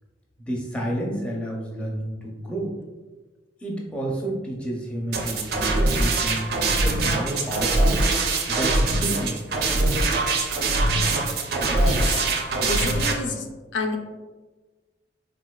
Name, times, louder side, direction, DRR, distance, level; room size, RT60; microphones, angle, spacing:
voice 1, 0.4-2.8 3.6-8.1 8.5-9.4, right 1 dB, 5° left, -2 dB, 0.5 m, -30 dB
sound 1, 5.1-13.1, right 2 dB, 60° right, 0.4 m, -23 dB
voice 2, 11.7-12.0 12.6-13.5 13.7-14.0, left 3 dB, 75° left, 3 dB, 0.4 m, -29 dB
4.0 x 2.4 x 2.2 m, 1.3 s
head